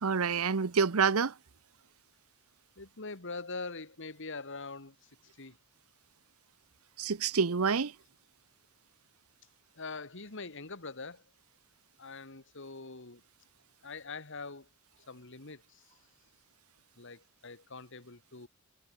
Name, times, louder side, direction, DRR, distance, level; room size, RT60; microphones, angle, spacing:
voice 1, 0.0-1.3 7.0-7.9, right 5 dB, 80° right, 0.8 m, -27 dB
voice 2, 2.8-5.1 5.4-5.6 9.8-11.2 12.0-13.2 13.8-14.7 15.1-15.9 17.0-18.5, left 3 dB, 60° left, 2.2 m, -43 dB
head